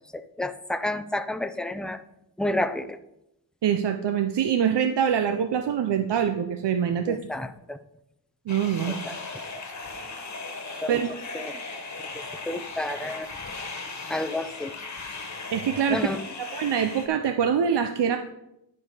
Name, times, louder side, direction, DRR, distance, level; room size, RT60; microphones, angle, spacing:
voice 1, 0.1-2.0 2.4-3.0 7.1-7.8 8.9-9.2 10.8-11.0 11.3-11.6 12.0-12.1 12.5-13.3 14.1-14.7 15.9-16.2, left 1 dB, ahead, 10 dB, 0.4 m, -30 dB
voice 2, 3.6-7.2 8.5-9.0 10.9-11.2 15.5-16.1 16.5-18.2, right 8 dB, 80° right, 7 dB, 0.6 m, -24 dB
sound 1, 8.5-17.1, left 3 dB, 45° left, 1.4 m, -37 dB
10.5 x 5.4 x 4.9 m, 0.85 s
wide cardioid pair, 100°, 41 cm